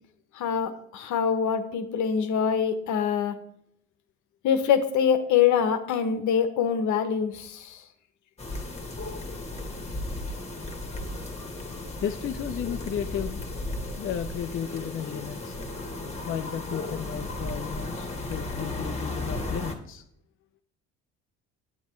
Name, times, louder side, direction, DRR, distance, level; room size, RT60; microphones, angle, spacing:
voice 1, 0.3-3.4 4.4-7.8, left 7 dB, 65° left, 9 dB, 1.0 m, -24 dB
sound 1, 8.4-19.7, left 2 dB, 20° left, 1.4 m, -35 dB
voice 2, 12.0-13.5 14.0-15.5 16.2-20.0, left 9 dB, 40° left, 7 dB, 0.5 m, -34 dB
8.4 x 6.7 x 3.1 m, 0.74 s
supercardioid pair, 70°, 33 cm